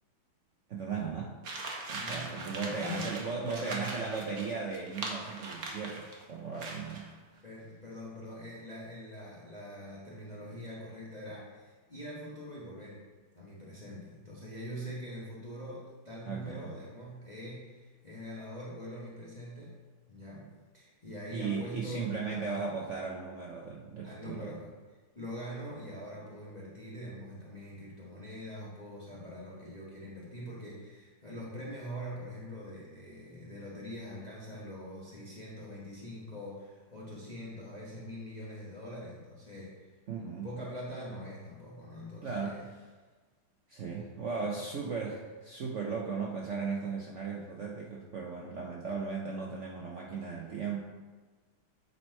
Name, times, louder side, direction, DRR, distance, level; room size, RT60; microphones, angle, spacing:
voice 1, 0.7-1.4 1.9-7.1 16.3-16.7 21.3-24.6 40.1-40.5 42.2-42.6 43.7-50.8, right 5 dB, 80° right, -2 dB, 0.6 m, -37 dB
sound 1, 1.4-6.2 6.6-7.1, right 3 dB, 55° right, 1.3 m, -40 dB
voice 2, 1.9-3.1 3.4-3.9 6.8-6.9 7.4-13.0 13.3-19.7 20.1-20.5 20.7-22.4 24.0-24.7 25.1-39.9 40.4-42.6, equal, 25° left, -6 dB, 1.0 m, -43 dB
8.4 x 4.4 x 4.4 m, 1.3 s
omnidirectional pair, 2.3 m